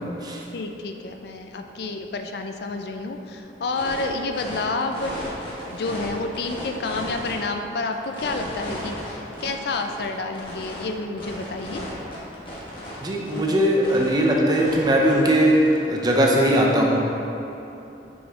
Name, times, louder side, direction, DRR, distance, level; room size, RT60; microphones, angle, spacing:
voice 1, 0.0-0.4 13.0-15.6 15.8-17.0, right 1 dB, 25° right, -2 dB, 0.7 m, -20 dB
voice 2, 0.5-5.1 5.7-11.8, left 3 dB, 65° left, 5 dB, 0.4 m, -29 dB
sound 1, 3.7-4.0 4.3-6.1 6.3-7.5 7.9-10.8 11.2-13.6 13.8-14.2 14.6-15.7, equal, 30° left, 1.4 m, -35 dB
6.3 x 5.9 x 3.7 m, 3.0 s
head